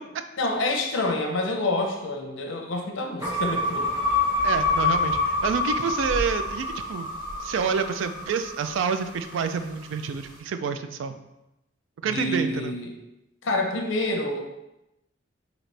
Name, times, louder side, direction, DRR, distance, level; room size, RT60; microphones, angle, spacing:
voice 1, 0.4-3.9 12.1-13.0 13.4-14.4, left 2 dB, 90° left, 2 dB, 0.7 m, -27 dB
sound 1, 3.2-9.6, left 2 dB, 20° right, 1.3 m, -27 dB
voice 2, 4.4-7.1 7.4-11.2 12.0-12.8, right 6 dB, 85° right, 9 dB, 0.3 m, -28 dB
4.0 x 2.9 x 3.3 m, 0.92 s
head